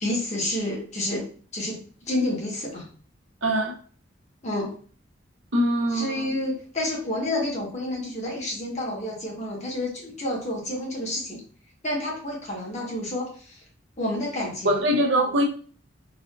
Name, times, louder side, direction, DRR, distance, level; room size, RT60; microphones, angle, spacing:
voice 1, 0.0-1.3 1.5-2.9 4.4-4.7 5.9-11.4 11.8-13.3 14.0-14.8, left 1 dB, 35° left, 1.1 m, -29 dB
voice 2, 3.4-3.7 5.5-6.3 14.6-15.4, right 1 dB, 70° right, 0.7 m, -22 dB
4.1 x 2.5 x 2.3 m
head